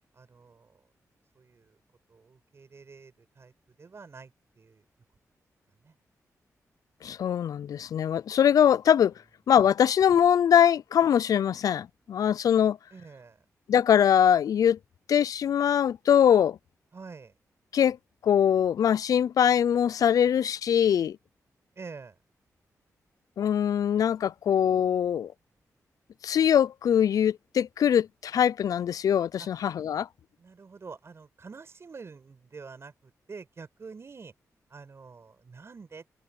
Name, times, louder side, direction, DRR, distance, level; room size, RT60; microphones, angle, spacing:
voice 1, 0.1-0.8 1.3-1.8 2.1-4.8 5.8-5.9 12.9-13.4 16.9-17.4 21.8-22.2 29.4-29.5 30.4-34.3 34.7-36.0, right 4 dB, 45° right, 7.2 m, -47 dB
voice 2, 7.0-9.1 9.5-12.8 13.7-14.8 15.1-16.6 17.7-18.0 18.2-21.2 23.4-25.3 26.2-30.1, left 9 dB, 75° left, 0.4 m, -22 dB
cardioid pair, 95°, 6 cm